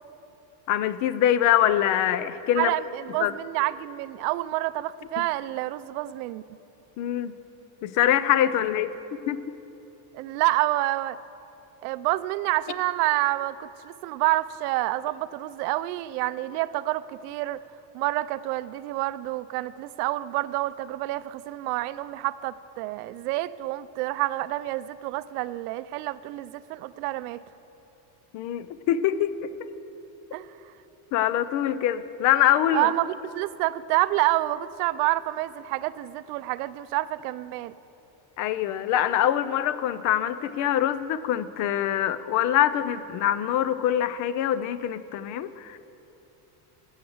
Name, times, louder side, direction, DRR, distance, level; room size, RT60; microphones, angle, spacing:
voice 1, 0.7-2.7 3.2-3.3 7.0-7.3 7.8-8.9 9.3-9.4 28.3-29.7 31.1-32.9 38.4-45.8, left 11 dB, 45° left, 14 dB, 0.4 m, -24 dB
voice 2, 2.6-6.4 10.1-11.2 11.8-17.6 17.9-27.4 30.3-30.7 32.7-37.7, right 17 dB, 90° right, 16 dB, 0.6 m, -28 dB
14.0 x 7.3 x 7.8 m, 3.0 s
cardioid pair, 160°, 44 cm